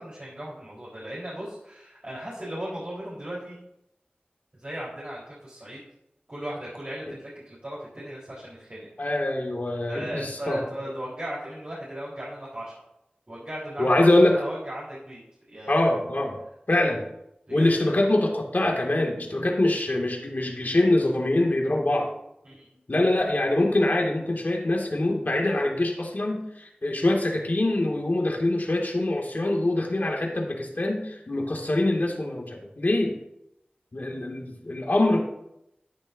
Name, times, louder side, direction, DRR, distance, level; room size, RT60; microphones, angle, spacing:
voice 1, 0.0-3.6 4.5-5.8 6.3-8.9 9.9-12.8 13.3-15.2 15.5-15.9 17.5-18.0 22.4-22.8, equal, 45° right, -8 dB, 4.0 m, -37 dB
voice 2, 9.0-10.6 13.8-14.4 15.7-16.4 16.7-17.0 17.5-22.1 22.9-33.2 33.9-35.2, left 1 dB, 60° left, 0 dB, 2.2 m, -24 dB
13.5 x 10.0 x 2.7 m, 0.82 s
wide cardioid pair, 55°, 3 cm